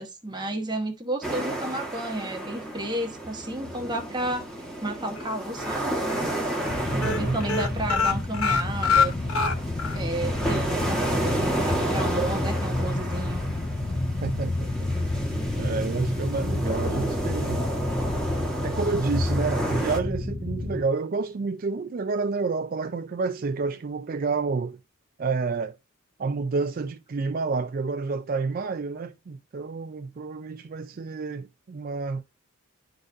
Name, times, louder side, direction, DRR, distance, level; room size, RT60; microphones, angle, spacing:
voice 1, 0.0-4.4 4.8-6.0 7.0-9.1 9.9-13.4, right 1 dB, 20° right, 1.1 m, -32 dB
sound 1, 1.2-20.0, right 1 dB, 5° left, 1.3 m, -32 dB
sound 2, 5.2-5.8 6.1-6.3 6.5-6.7 7.0-10.0 10.4-10.5 10.8-10.9, left 5 dB, 85° left, 1.0 m, -25 dB
sound 3, 6.6-20.8, left 2 dB, 25° left, 0.5 m, -29 dB
voice 2, 6.9-7.4 14.2-14.9 15.3-17.7 18.6-24.8 25.2-25.8 26.2-32.2, right 4 dB, 45° right, 0.4 m, -29 dB
11.0 x 4.0 x 2.5 m
head